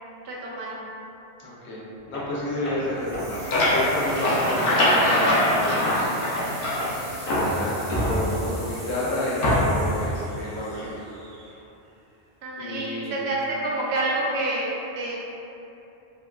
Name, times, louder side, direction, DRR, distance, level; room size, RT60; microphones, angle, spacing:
voice 1, 0.2-0.9 7.1-7.5 12.4-15.2, right 2 dB, 75° right, -4 dB, 0.9 m, -28 dB
voice 2, 1.4-6.2 7.2-10.9 12.6-13.2, left 1 dB, 85° left, -6 dB, 1.0 m, -31 dB
Tools, 2.1-2.4 2.6-7.7, equal, 15° left, 0.5 m, -34 dB
sound 1, 3.0-7.0 7.3-8.6 9.4-9.9, left 1 dB, 60° left, 0.7 m, -23 dB
sound 2, 3.0-11.8, right 1 dB, 45° right, 0.6 m, -43 dB
3.6 x 2.3 x 2.2 m, 2.8 s
omnidirectional pair, 1.1 m